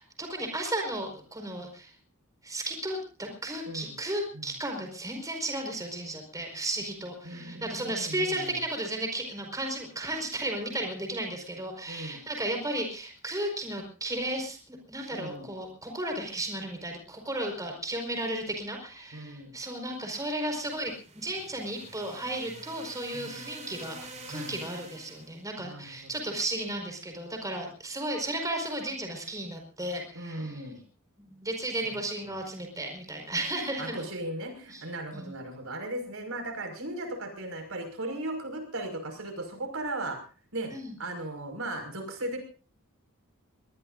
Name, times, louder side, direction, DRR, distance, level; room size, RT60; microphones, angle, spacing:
voice 1, 0.0-1.9 2.4-30.6 31.3-34.0 34.7-34.8 35.1-35.4 40.7-40.9, right 1 dB, 15° right, 3 dB, 4.9 m, -34 dB
voice 2, 3.7-4.0 4.3-4.5 7.2-8.6 11.9-12.2 15.1-15.5 19.1-19.6 23.1-23.4 24.3-24.5 25.6-25.9 30.1-30.8 32.2-32.3 33.8-40.2 40.5-40.7 41.0-42.4, right 1 dB, 65° right, 6 dB, 5.6 m, -37 dB
sound 1, 20.5-25.4, right 2 dB, 30° right, 5.1 m, -47 dB
23.5 x 20.5 x 2.6 m, 0.38 s
head